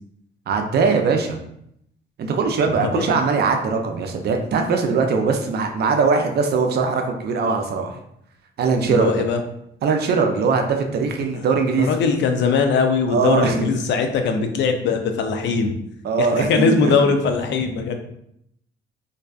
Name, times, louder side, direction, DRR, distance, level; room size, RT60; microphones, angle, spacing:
voice 1, 0.5-1.4 2.2-8.0 8.6-9.2 9.8-11.9 13.1-13.7 16.0-17.0, right 4 dB, 55° right, 4 dB, 0.4 m, -21 dB
voice 2, 8.8-9.4 11.2-11.5 11.8-15.8 16.2-18.0, left 5 dB, 65° left, 5 dB, 0.4 m, -21 dB
2.6 x 2.2 x 2.3 m, 0.75 s
cardioid pair, 90°, 20 cm